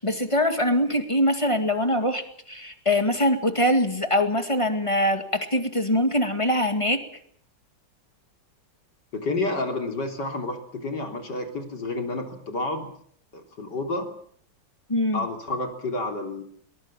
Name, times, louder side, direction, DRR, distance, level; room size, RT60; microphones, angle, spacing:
voice 1, 0.0-7.0 14.9-15.3, left 1 dB, 15° left, 7 dB, 2.1 m, -23 dB
voice 2, 9.1-12.9 13.3-14.1 15.1-16.4, left 2 dB, 65° left, 4 dB, 4.1 m, -30 dB
22.0 x 20.0 x 7.4 m, 0.62 s
omnidirectional pair, 2.0 m